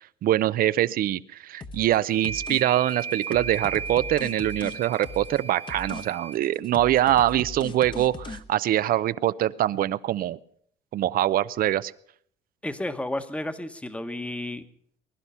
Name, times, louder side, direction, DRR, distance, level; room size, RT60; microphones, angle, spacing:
voice 1, 0.2-10.4 10.9-11.9, right 13 dB, 60° right, 17 dB, 0.6 m, -24 dB
sound 1, 1.6-2.0 2.2-2.6 2.9-5.4 5.7-6.0 6.3-8.4, left 3 dB, 30° left, 1.1 m, -39 dB
sound 2, 2.1-6.4, right 6 dB, 40° right, 1.5 m, -36 dB
voice 2, 12.6-14.6, left 1 dB, 5° left, 9 dB, 1.1 m, -32 dB
21.0 x 11.5 x 5.6 m, 0.62 s
cardioid pair, 110°, 17 cm